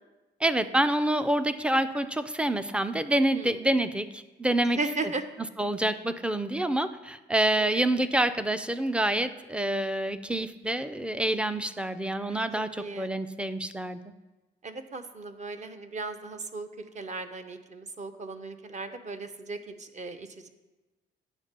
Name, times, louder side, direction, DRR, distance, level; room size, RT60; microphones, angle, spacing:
voice 1, 0.4-4.8 5.6-14.1, right 1 dB, 5° right, 12 dB, 0.4 m, -27 dB
voice 2, 4.7-5.2 7.6-7.8 12.3-12.4 12.8-13.1 14.6-20.5, right 3 dB, 35° right, 8 dB, 0.7 m, -37 dB
9.0 x 3.6 x 6.6 m, 1.1 s
cardioid pair, 90°, 20 cm